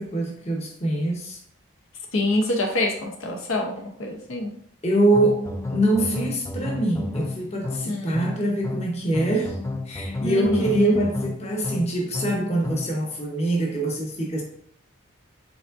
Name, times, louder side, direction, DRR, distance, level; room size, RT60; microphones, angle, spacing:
voice 1, 0.0-1.4 4.8-9.6 9.9-14.4, right 1 dB, 30° left, -1 dB, 0.8 m, -24 dB
voice 2, 2.1-4.5 7.8-8.3 10.2-11.0, left 1 dB, 85° left, 1 dB, 0.7 m, -26 dB
sound 1, 5.1-13.0, left 2 dB, 15° left, 0.3 m, -32 dB
4.9 x 3.6 x 2.5 m, 0.64 s
head